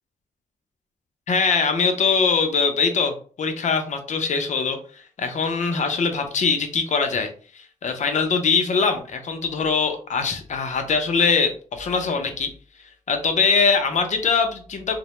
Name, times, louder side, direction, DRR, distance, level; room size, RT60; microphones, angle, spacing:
voice 1, 1.3-12.5 13.1-15.0, left 5 dB, 60° left, 6 dB, 0.6 m, -22 dB
2.1 x 2.0 x 2.9 m, 0.41 s
cardioid pair, 70°, 14 cm